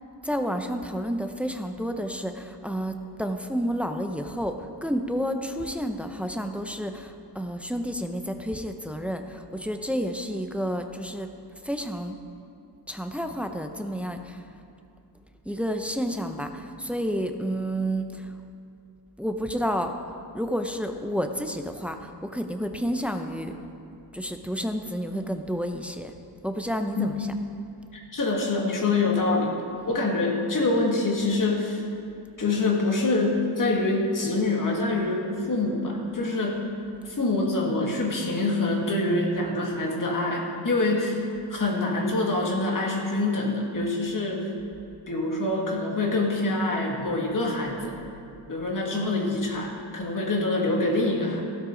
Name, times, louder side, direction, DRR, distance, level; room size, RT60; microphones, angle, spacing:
voice 1, 0.2-11.3 11.6-12.2 12.9-14.4 15.4-18.3 19.2-19.9 20.3-23.5 24.1-26.1 26.4-27.3, equal, 5° right, 5 dB, 0.5 m, -30 dB
voice 2, 27.9-29.5 29.9-31.8 32.4-36.7 37.1-41.2 41.5-44.5 45.1-47.9 48.5-51.4, left 2 dB, 45° left, -1 dB, 2.0 m, -25 dB
15.5 x 12.5 x 3.8 m, 2.5 s
wide cardioid pair, 165°, 43 cm